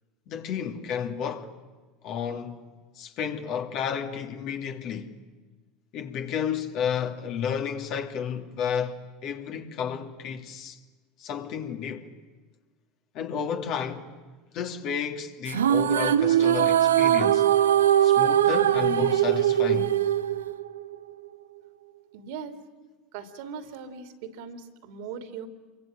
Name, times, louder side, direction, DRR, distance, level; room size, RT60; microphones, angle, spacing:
voice 1, 0.3-1.5 2.0-2.7 2.9-5.2 5.9-10.8 11.2-12.1 13.1-14.1 14.5-17.5 18.0-20.0, left 7 dB, 50° left, 2.7 m, -32 dB
sound 1, 15.5-20.9, right 11 dB, 80° right, 0.7 m, -21 dB
voice 2, 22.1-22.6 23.1-25.5, right 6 dB, 65° right, 2.9 m, -39 dB
27.5 x 23.5 x 9.0 m
hypercardioid pair, 80°, 0 cm